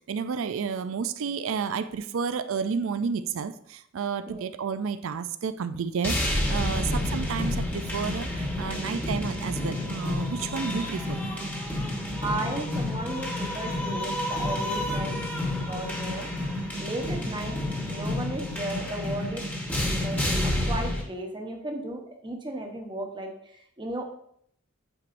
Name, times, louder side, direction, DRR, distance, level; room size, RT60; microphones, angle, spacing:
voice 1, 0.1-11.2 12.3-12.4, right 6 dB, 70° right, 13 dB, 0.4 m, -31 dB
sound 1, 6.0-21.0, left 1 dB, 10° left, 1.1 m, -29 dB
voice 2, 12.2-15.1 15.5-16.3 16.8-17.6 17.9-19.4 19.9-23.3 23.8-24.0, right 1 dB, 20° right, 2 dB, 0.9 m, -35 dB
8.6 x 4.6 x 2.6 m, 0.68 s
head